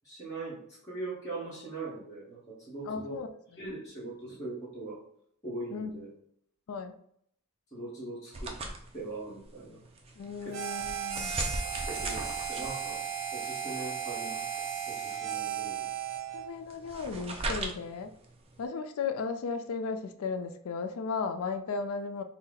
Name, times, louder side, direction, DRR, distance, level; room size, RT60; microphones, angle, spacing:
voice 1, 0.0-3.2 3.6-5.0 5.4-6.1 7.7-8.5 8.9-9.8 10.4-10.6 11.6-13.0 13.3-14.5 14.9-15.8, right 2 dB, 15° left, -10 dB, 1.2 m, -41 dB
voice 2, 2.8-3.7 5.7-5.9 6.7-6.9 10.2-11.4 16.3-18.1 18.6-22.2, left 5 dB, 70° left, 8 dB, 0.4 m, -35 dB
sound 1, 8.3-18.6, right 2 dB, 25° right, 0.5 m, -40 dB
Harmonica, 10.5-16.5, right 8 dB, 65° right, 0.6 m, -35 dB
4.1 x 2.1 x 3.8 m, 0.67 s
head